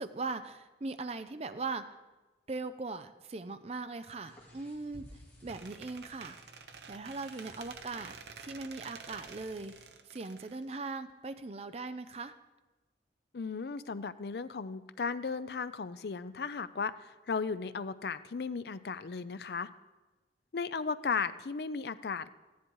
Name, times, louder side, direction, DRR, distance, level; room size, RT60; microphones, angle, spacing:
voice 1, 0.0-2.0 2.5-6.4 6.9-9.7 10.1-12.4, right 3 dB, 35° right, 10 dB, 0.5 m, -40 dB
sound 1, 4.2-9.9, equal, 10° left, 2.6 m, -57 dB
Squeak, 5.5-11.3, right 5 dB, 70° right, 0.8 m, -50 dB
voice 2, 13.3-19.7 20.5-22.3, left 5 dB, 65° left, 14 dB, 0.5 m, -35 dB
13.5 x 10.0 x 4.7 m, 1.2 s
head